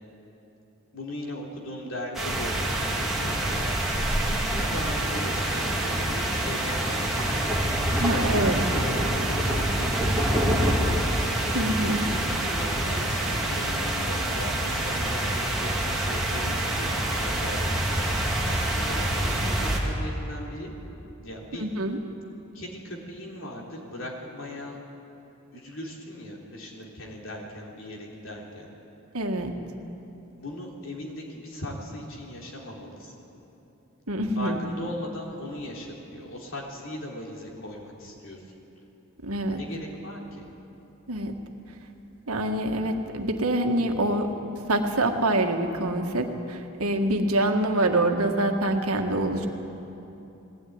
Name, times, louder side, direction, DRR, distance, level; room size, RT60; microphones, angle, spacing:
voice 1, 0.9-3.8 4.3-7.5 7.9-11.0 11.4-20.7 21.2-21.7 22.5-24.7 25.5-28.7 30.3-33.1 34.4-38.4 39.6-40.5 47.4-47.5, left 1 dB, 60° left, -2 dB, 3.7 m, -38 dB
sound 1, 2.1-19.8, right 1 dB, ahead, 2.5 m, -26 dB
voice 2, 8.0-8.7 11.5-12.1 21.6-22.0 29.1-29.5 34.1-34.6 39.2-39.6 41.1-41.3 42.3-44.3 44.7-49.5, right 1 dB, 80° right, 4 dB, 1.8 m, -25 dB
20.0 x 16.5 x 9.6 m, 2.9 s
head